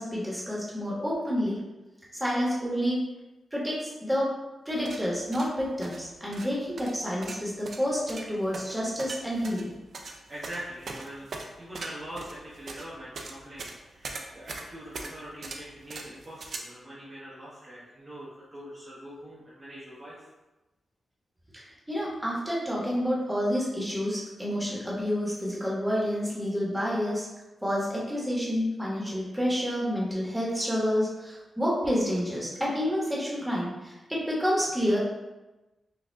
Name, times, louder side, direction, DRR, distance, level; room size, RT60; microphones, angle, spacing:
voice 1, 0.0-1.6 2.1-3.0 3.5-4.3 4.6-9.7 21.5-27.3 27.6-35.0, equal, 5° right, -6 dB, 1.2 m, -29 dB
sound 1, 4.7-16.6, right 3 dB, 60° right, 0.4 m, -41 dB
voice 2, 10.3-11.3 11.6-20.3, equal, 30° right, -8 dB, 0.9 m, -43 dB
4.9 x 2.5 x 2.3 m, 1.1 s
cardioid pair, 90°, 0 cm